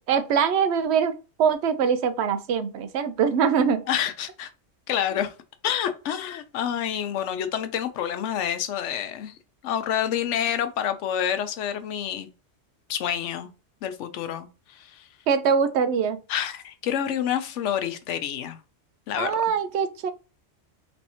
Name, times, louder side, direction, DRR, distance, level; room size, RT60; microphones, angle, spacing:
voice 1, 0.1-3.8 15.3-16.2 19.2-20.1, right 6 dB, 65° right, 0.8 m, -23 dB
voice 2, 3.9-4.5 4.9-5.3 5.6-9.4 9.6-12.3 12.9-13.5 13.8-15.1 16.3-18.6 19.1-19.4, left 9 dB, 75° left, 0.9 m, -28 dB
3.5 x 3.1 x 2.8 m
omnidirectional pair, 1.3 m